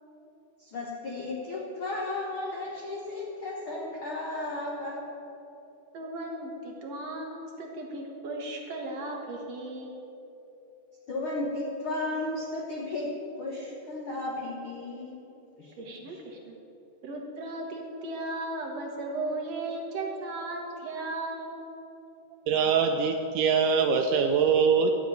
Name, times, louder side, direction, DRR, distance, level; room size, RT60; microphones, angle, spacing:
voice 1, 0.6-5.1 11.1-13.1 13.4-15.3 15.6-15.7 16.0-16.2, left 2 dB, 65° left, -3 dB, 1.3 m, -34 dB
voice 2, 5.9-10.0 15.8-16.6 17.0-21.6, right 2 dB, 55° right, 0 dB, 2.1 m, -36 dB
voice 3, 22.5-24.9, right 6 dB, 80° right, 6 dB, 2.0 m, -23 dB
13.5 x 6.4 x 9.0 m, 3.0 s
omnidirectional pair, 4.1 m